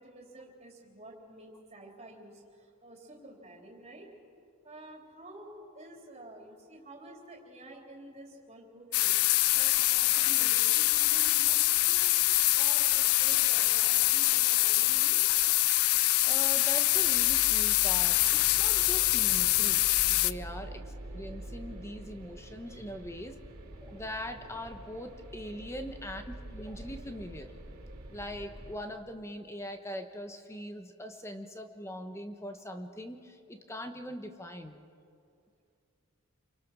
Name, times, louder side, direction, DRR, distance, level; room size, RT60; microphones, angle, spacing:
voice 1, 0.0-4.1 4.6-9.2 9.5-12.1 12.5-15.2 20.7-20.9, right 1 dB, 30° right, -1 dB, 3.7 m, -50 dB
sound 1, 8.9-20.3, left 17 dB, 75° left, 0.5 m, -25 dB
voice 2, 16.2-20.8 21.1-23.3 23.8-27.5 28.1-34.8, equal, 10° left, 6 dB, 1.2 m, -41 dB
sound 2, 16.9-28.7, right 1 dB, 85° right, 3.3 m, -45 dB
28.5 x 24.0 x 6.3 m, 2.4 s
head